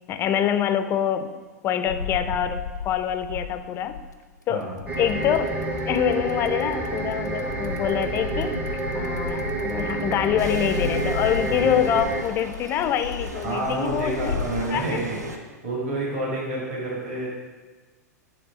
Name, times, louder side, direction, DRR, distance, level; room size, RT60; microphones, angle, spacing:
voice 1, 0.1-1.3 1.6-4.0 4.5-4.7 5.0-5.5 5.9-8.5 8.9-14.3 14.7-14.8, left 9 dB, 25° left, 9 dB, 0.4 m, -25 dB
sound 1, 1.8-4.3 4.8-14.7, left 5 dB, 85° left, 0.5 m, -35 dB
voice 2, 4.5-4.8 11.5-11.9 13.4-15.2 15.6-17.3, right 2 dB, 50° right, -4 dB, 2.0 m, -29 dB
sound 2, 4.9-12.2, right 2 dB, 15° right, 0.7 m, -29 dB
sound 3, 10.4-15.4, right 2 dB, 75° right, 0.8 m, -38 dB
9.2 x 3.7 x 4.8 m, 1.3 s
figure-of-eight pair, 95°, 9 cm